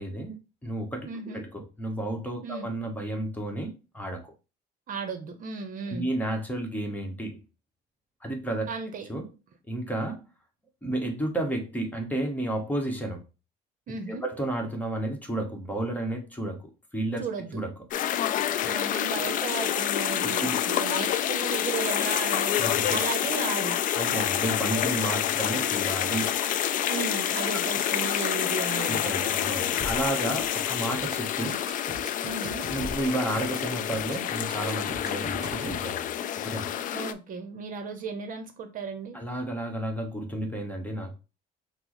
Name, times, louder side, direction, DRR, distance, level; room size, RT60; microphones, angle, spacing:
voice 1, 0.0-4.3 5.9-7.4 8.2-8.7 9.1-9.3 9.7-10.2 10.8-13.2 14.1-17.2 17.5-17.7 18.6-19.0 20.2-20.7 22.6-23.0 23.9-26.4 28.9-31.6 32.7-36.1 36.4-36.7 39.1-41.1, right 1 dB, 10° left, 3 dB, 1.0 m, -32 dB
voice 2, 1.0-1.4 2.4-2.7 4.9-6.1 8.7-9.1 13.9-14.2 17.2-17.6 18.7-23.8 26.9-29.0 32.2-32.7 36.9-39.2, right 5 dB, 50° right, 7 dB, 0.8 m, -35 dB
sound 1, 17.9-37.1, left 10 dB, 50° left, 0.4 m, -28 dB
sound 2, 29.8-30.1 30.4-30.6 30.9-31.2 31.5-33.1 33.4-33.6 33.9-34.2 34.5-35.8, right 2 dB, 25° right, 1.3 m, -40 dB
5.9 x 2.0 x 3.0 m, 0.30 s
cardioid pair, 110°, 17 cm